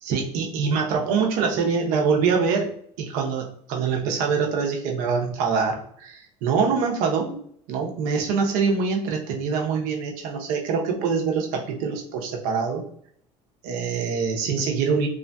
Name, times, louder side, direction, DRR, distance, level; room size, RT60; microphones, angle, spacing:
voice 1, 0.0-2.7 3.0-7.4 7.7-12.8 13.6-15.1, right 5 dB, 75° right, 1 dB, 0.7 m, -24 dB
3.1 x 2.5 x 2.2 m, 0.62 s
supercardioid pair, 110°, 14 cm